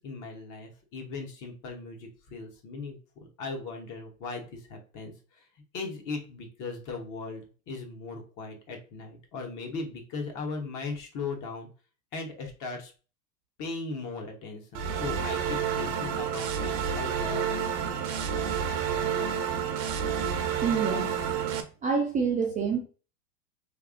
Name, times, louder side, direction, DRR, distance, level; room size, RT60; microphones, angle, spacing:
voice 1, 0.0-5.1 5.7-11.7 12.1-12.9 13.6-17.4, left 3 dB, 40° left, 2 dB, 1.2 m, -38 dB
sound 1, 14.7-21.6, right 7 dB, 45° right, 0.8 m, -29 dB
voice 2, 20.6-21.0 21.8-22.8, right 5 dB, 15° right, 1 dB, 0.5 m, -26 dB
3.4 x 2.6 x 3.6 m, 0.35 s
supercardioid pair, 135°, 49 cm